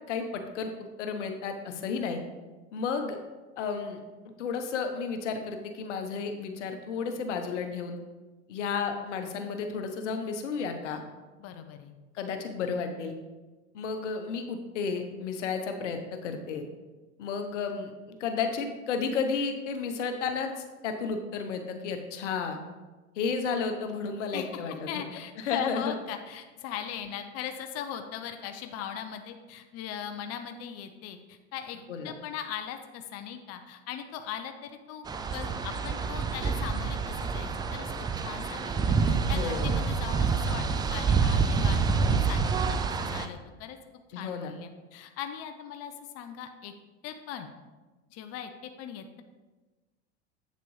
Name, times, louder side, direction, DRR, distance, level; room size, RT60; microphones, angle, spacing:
voice 1, 0.1-0.7 1.0-2.2 2.7-3.2 3.6-4.0 4.4-8.0 8.5-11.0 12.1-13.1 13.7-16.6 17.2-17.9 18.2-22.6 23.2-24.7 25.4-25.9 31.9-32.1 39.2-39.7 44.1-44.5, left 5 dB, 85° left, 6 dB, 1.0 m, -32 dB
voice 2, 11.4-11.9 24.3-31.8 32.0-35.0 35.3-37.9 38.2-43.8 44.1-46.7 47.0-47.5 48.1-49.2, left 9 dB, 45° left, 7 dB, 0.7 m, -39 dB
sound 1, 35.1-43.3, right 5 dB, 15° right, 0.3 m, -27 dB
8.2 x 6.7 x 3.2 m, 1.2 s
hypercardioid pair, 105°, 35 cm